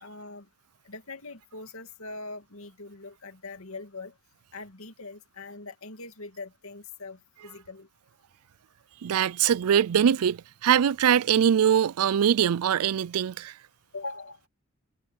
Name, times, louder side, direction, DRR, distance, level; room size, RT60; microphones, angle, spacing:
voice 1, 0.0-0.5 0.8-4.1 4.5-7.9 13.9-14.4, left 3 dB, 75° left, 2.5 m, -42 dB
voice 2, 9.0-13.5, right 8 dB, 85° right, 0.4 m, -22 dB
head